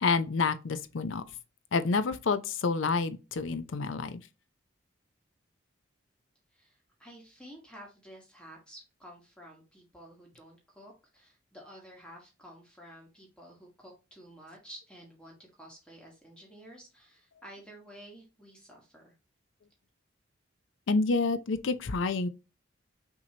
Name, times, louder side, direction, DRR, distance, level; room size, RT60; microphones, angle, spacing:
voice 1, 0.0-1.2 1.7-4.2 20.9-22.3, left 4 dB, 70° left, 0.5 m, -28 dB
voice 2, 6.5-19.1, equal, 5° left, 1.3 m, -51 dB
5.9 x 2.8 x 2.8 m
head